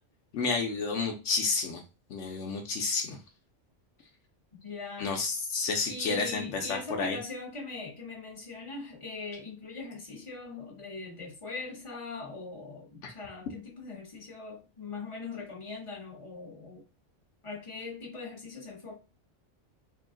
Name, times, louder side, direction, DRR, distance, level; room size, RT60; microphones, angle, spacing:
voice 1, 0.3-1.8 2.1-3.2 5.0-7.2, left 4 dB, 75° left, 1.0 m, -30 dB
voice 2, 4.6-5.1 5.9-16.8 17.4-19.0, left 3 dB, 25° left, 1.3 m, -41 dB
3.5 x 2.3 x 3.7 m
omnidirectional pair, 1.3 m